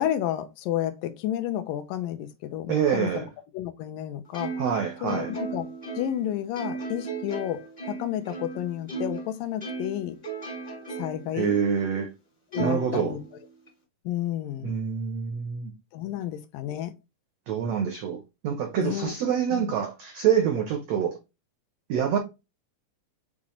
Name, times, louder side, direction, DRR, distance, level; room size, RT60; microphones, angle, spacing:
voice 1, 0.0-3.3 3.5-4.5 5.0-5.7 6.0-10.2 11.0-11.6 12.5-13.2 14.1-14.7 15.9-16.9 18.8-19.1 19.5-19.7, left 12 dB, 80° left, 2.2 m, -31 dB
voice 2, 2.7-3.3 4.6-5.3 11.3-12.1 12.6-13.2 14.6-15.7 17.5-21.2 21.9-22.2, right 8 dB, 80° right, 1.4 m, -26 dB
Plucked string instrument, 4.3-9.3 9.6-11.3 11.8-11.9 12.5-13.7, right 4 dB, 45° left, 0.5 m, -35 dB
7.2 x 2.5 x 3.0 m
omnidirectional pair, 3.9 m